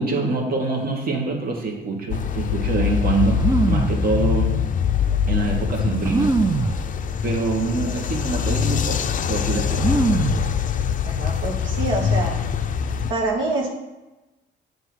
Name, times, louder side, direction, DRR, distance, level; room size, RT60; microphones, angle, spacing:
voice 1, 0.0-4.5 5.3-6.3 7.2-9.9, right 3 dB, 50° right, 0 dB, 1.3 m, -25 dB
sound 1, 2.1-13.1, left 7 dB, 40° left, 0.4 m, -23 dB
sound 2, 3.4-4.1 4.9-5.0 6.0-6.8 7.6-7.8 8.1-8.6 9.8-10.5 10.8-11.4, right 3 dB, 20° right, 0.4 m, -22 dB
voice 2, 11.0-12.3 13.1-13.7, right 2 dB, 85° right, -1 dB, 1.1 m, -25 dB
7.6 x 2.7 x 5.9 m, 1.1 s
cardioid pair, 90°, 20 cm